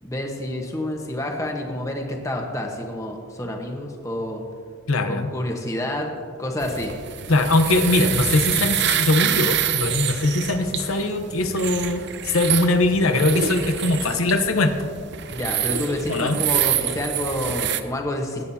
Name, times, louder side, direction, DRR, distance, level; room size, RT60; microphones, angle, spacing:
voice 1, 0.0-4.4 5.1-6.1 6.4-6.9 15.3-18.5, left 1 dB, 15° left, 1 dB, 1.2 m, -28 dB
voice 2, 4.9-5.3 7.3-14.9 16.1-16.4, left 2 dB, 90° left, 7 dB, 0.9 m, -21 dB
sound 1, 6.6-17.8, right 10 dB, 55° right, 0.5 m, -26 dB
20.5 x 9.4 x 2.8 m, 2.2 s
head